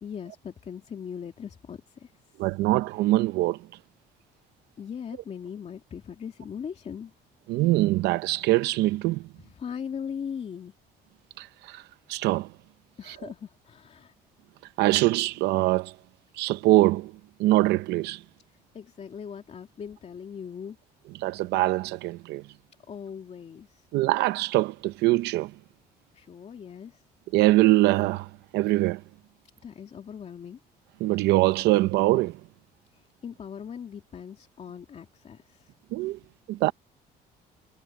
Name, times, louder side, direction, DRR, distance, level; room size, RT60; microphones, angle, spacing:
voice 1, 0.0-2.1 4.8-7.1 9.4-10.7 13.0-14.1 18.7-20.8 22.9-23.9 26.1-27.0 29.6-30.6 32.9-35.7, left 7 dB, 40° left, 2.7 m, -39 dB
voice 2, 2.4-3.6 7.5-9.2 11.4-11.8 12.1-12.5 13.1-13.2 14.8-15.9 16.3-17.1 17.4-18.2 21.2-22.4 23.9-25.5 27.3-29.0 31.0-32.4 35.9-36.2 36.5-36.7, right 17 dB, 85° right, 0.6 m, -23 dB
cardioid pair, 110°, 17 cm